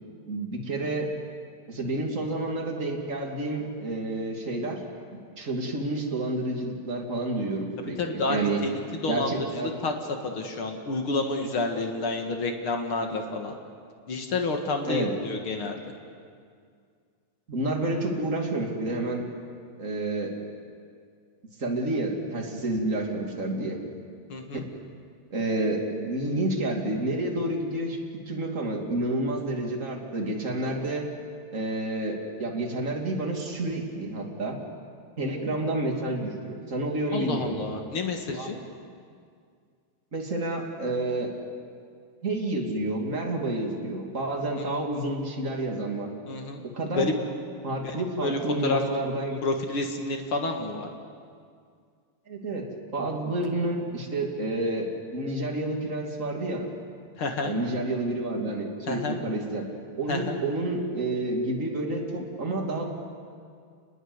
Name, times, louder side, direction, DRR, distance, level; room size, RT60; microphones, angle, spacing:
voice 1, 0.3-1.1 1.7-4.8 5.4-8.6 9.1-9.7 14.9-15.1 17.5-19.3 19.8-20.3 21.6-23.8 24.5-24.7 25.3-28.0 28.3-31.1 31.5-34.6 35.2-37.6 38.3-38.5 40.1-41.3 42.2-46.1 46.6-47.1 47.6-49.4 52.3-56.7 57.4-59.7 60.0-62.9, right 2 dB, 25° right, 0 dB, 2.1 m, -29 dB
voice 2, 7.8-9.9 10.2-13.5 14.1-15.8 24.3-24.6 37.1-38.6 44.6-44.7 46.3-47.1 47.7-47.9 48.2-48.8 49.4-50.9 57.2-57.5 58.9-59.2 60.1-60.4, left 3 dB, 65° left, 3 dB, 1.3 m, -30 dB
29.5 x 21.0 x 8.1 m, 2.2 s
omnidirectional pair, 5.3 m